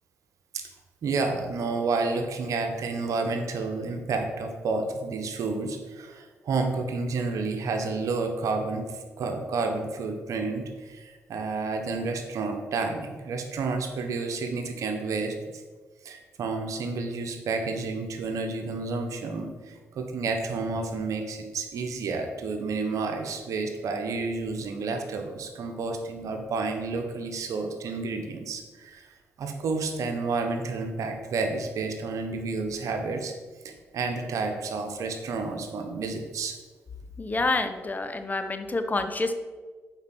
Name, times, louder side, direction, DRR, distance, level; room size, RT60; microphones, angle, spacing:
voice 1, 1.0-15.6 16.0-33.3 33.6-36.5, right 3 dB, 75° right, 5 dB, 1.2 m, -30 dB
voice 2, 37.2-39.3, left 2 dB, 30° left, 8 dB, 0.9 m, -28 dB
7.2 x 5.0 x 6.1 m, 1.4 s
supercardioid pair, 50°, 6 cm